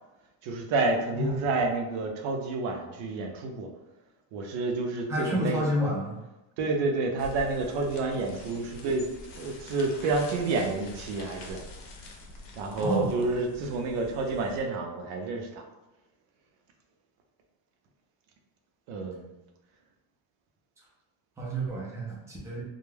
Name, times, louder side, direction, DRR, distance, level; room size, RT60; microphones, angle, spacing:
voice 1, 0.4-3.7 4.3-5.6 6.6-9.1 9.3-11.6 12.6-15.6 18.9-19.3, right 3 dB, 70° right, 3 dB, 0.6 m, -29 dB
voice 2, 5.1-6.2 12.8-13.1 21.4-22.6, equal, 5° right, -5 dB, 0.3 m, -29 dB
sound 1, 7.2-14.6, left 2 dB, 60° left, 0.6 m, -46 dB
2.3 x 2.1 x 3.1 m, 1.0 s
cardioid pair, 150°, 49 cm